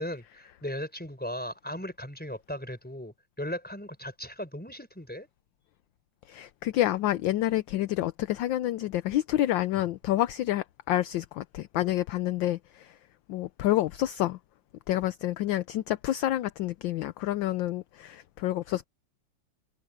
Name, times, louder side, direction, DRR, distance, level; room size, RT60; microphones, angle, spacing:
voice 1, 0.0-5.3, left 1 dB, 5° left, 4.8 m, -37 dB
voice 2, 6.3-12.9 13.3-14.4 14.9-18.9, left 14 dB, 70° left, 1.2 m, -28 dB
omnidirectional pair, 2.4 m